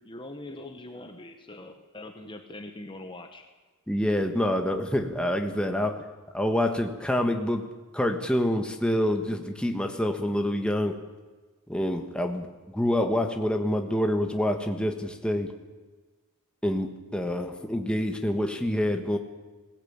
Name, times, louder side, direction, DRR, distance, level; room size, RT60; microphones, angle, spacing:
voice 1, 0.0-3.5, left 2 dB, 20° left, 5 dB, 1.3 m, -42 dB
voice 2, 3.9-6.0 6.3-7.7 7.9-11.0 11.7-15.5 16.6-19.2, left 1 dB, 5° left, 4 dB, 1.6 m, -27 dB
21.0 x 17.0 x 8.9 m, 1.3 s
head